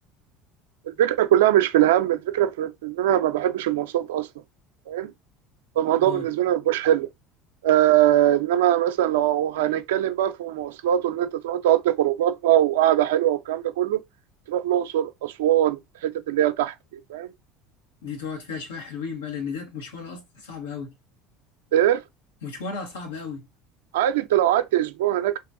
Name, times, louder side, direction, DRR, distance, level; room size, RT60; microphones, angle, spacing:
voice 1, 0.9-4.3 4.9-5.1 5.8-7.1 7.6-14.0 14.5-17.3 21.7-22.0 23.9-25.4, right 12 dB, 80° right, 0.5 m, -22 dB
voice 2, 18.0-20.9 22.4-23.4, left 5 dB, 90° left, 1.4 m, -34 dB
2.9 x 2.9 x 3.6 m
hypercardioid pair, 80°, 0 cm